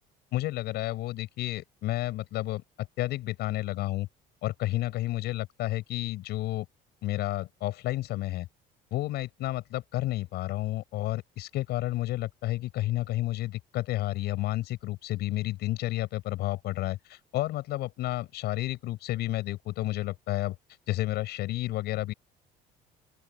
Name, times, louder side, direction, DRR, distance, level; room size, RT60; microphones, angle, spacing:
voice 1, 0.3-2.6 3.0-4.1 4.4-6.7 7.0-8.5 8.9-20.6 20.9-22.1, left 16 dB, 65° left, 7.4 m, -31 dB
open air
cardioid pair, 155°, 18 cm